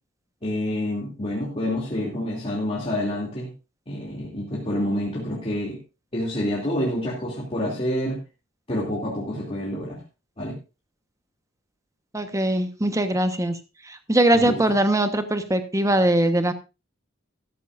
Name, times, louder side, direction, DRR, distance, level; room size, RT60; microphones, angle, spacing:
voice 1, 0.4-3.5 3.9-5.8 6.1-8.2 8.7-10.0 10.4-10.6 14.3-14.6, left 1 dB, 30° left, -5 dB, 2.8 m, -28 dB
voice 2, 12.1-13.6 14.1-16.5, right 1 dB, 15° right, 8 dB, 1.2 m, -21 dB
13.5 x 13.0 x 2.6 m, 0.28 s
head